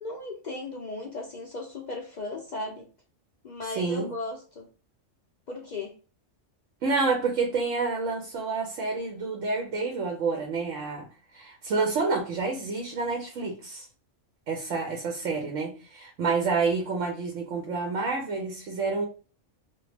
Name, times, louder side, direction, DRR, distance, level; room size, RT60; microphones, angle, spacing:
voice 1, 0.0-2.9 3.4-4.7 5.5-6.0, left 2 dB, 60° left, 0.5 m, -36 dB
voice 2, 3.7-4.1 6.8-11.1 11.3-13.9 14.5-19.1, right 4 dB, 80° right, 1.1 m, -28 dB
2.9 x 2.5 x 3.2 m
omnidirectional pair, 1.3 m